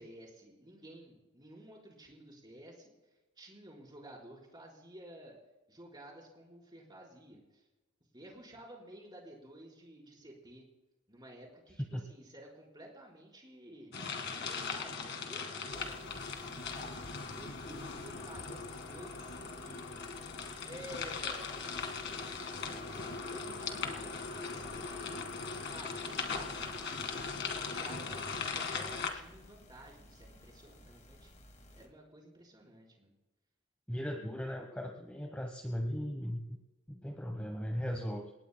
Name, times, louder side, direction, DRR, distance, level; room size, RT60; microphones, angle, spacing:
voice 1, 0.0-2.9 3.4-5.3 5.7-7.6 8.1-10.6 11.1-13.9 14.2-16.7 17.3-20.1 20.6-22.2 22.5-25.2 25.7-31.3 31.7-33.1, right 1 dB, 20° right, -2 dB, 4.4 m, -52 dB
sound 1, 13.9-29.1, left 4 dB, 50° left, 1.9 m, -39 dB
sound 2, 15.7-31.9, equal, 30° left, 1.8 m, -57 dB
voice 2, 33.9-36.4 36.9-38.3, equal, 5° left, 3 dB, 1.0 m, -37 dB
29.0 x 18.5 x 2.2 m, 1.1 s
head